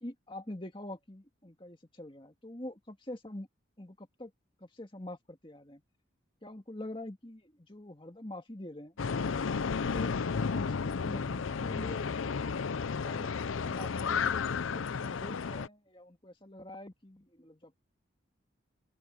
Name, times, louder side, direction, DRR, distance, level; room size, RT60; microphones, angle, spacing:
voice 1, 0.0-3.5 3.8-4.3 4.6-5.8 6.4-9.0 9.6-12.4 13.0-17.8, left 1 dB, 25° left, 2.1 m, -45 dB
sound 1, 9.0-15.7, left 5 dB, 85° left, 0.6 m, -32 dB
open air
head